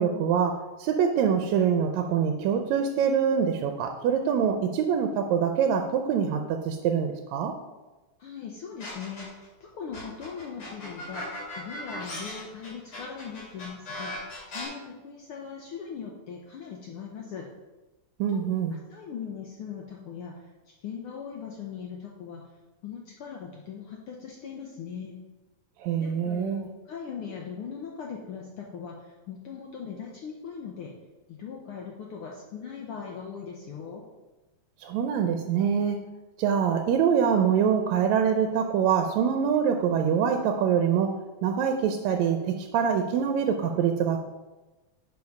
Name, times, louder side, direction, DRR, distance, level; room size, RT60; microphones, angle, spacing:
voice 1, 0.0-7.5 18.2-18.8 25.8-26.7 34.8-36.0 36.4-44.2, right 7 dB, 80° right, 5 dB, 1.8 m, -25 dB
voice 2, 8.2-17.4 18.9-22.4 22.8-25.2 26.0-30.9 31.3-34.0, left 6 dB, 75° left, -1 dB, 1.3 m, -40 dB
sound 1, 8.8-9.5 9.9-14.7, left 1 dB, 40° left, 3.0 m, -38 dB
7.1 x 4.8 x 5.3 m, 1.1 s
omnidirectional pair, 3.3 m